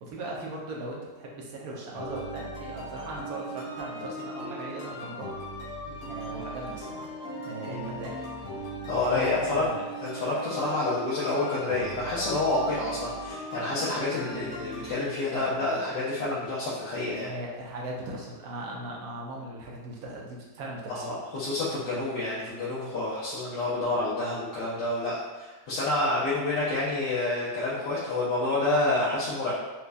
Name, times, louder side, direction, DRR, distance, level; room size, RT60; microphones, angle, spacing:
voice 1, 0.0-5.3 6.1-7.1 7.5-8.3 9.0-9.9 15.3-15.7 17.2-21.1, right 2 dB, 70° right, -2 dB, 1.0 m, -38 dB
sound 1, 1.9-14.9, right 1 dB, 65° left, 1.3 m, -38 dB
voice 2, 8.9-9.6 10.0-17.3 20.9-29.5, left 2 dB, 85° left, -9 dB, 1.4 m, -28 dB
4.3 x 2.3 x 2.5 m, 1.2 s
omnidirectional pair, 1.8 m